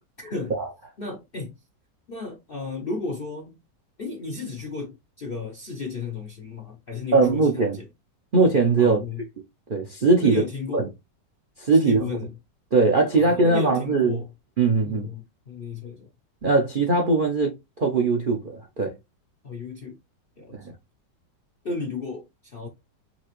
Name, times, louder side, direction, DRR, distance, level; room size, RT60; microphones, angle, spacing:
voice 1, 0.2-0.5 1.0-1.6 2.1-3.6 4.0-7.9 8.8-9.3 10.2-10.9 11.7-12.3 13.1-14.3 14.8-16.1 19.4-20.0 20.4-20.6 21.6-22.7, left 4 dB, 50° left, 0.7 m, -34 dB
voice 2, 7.1-7.8 8.3-9.0 9.7-10.4 10.7-10.8 11.6-12.0 12.7-14.2 14.6-15.1 16.4-18.9 20.5-20.7, right 3 dB, 45° right, 0.6 m, -20 dB
5.7 x 2.9 x 3.0 m
omnidirectional pair, 1.9 m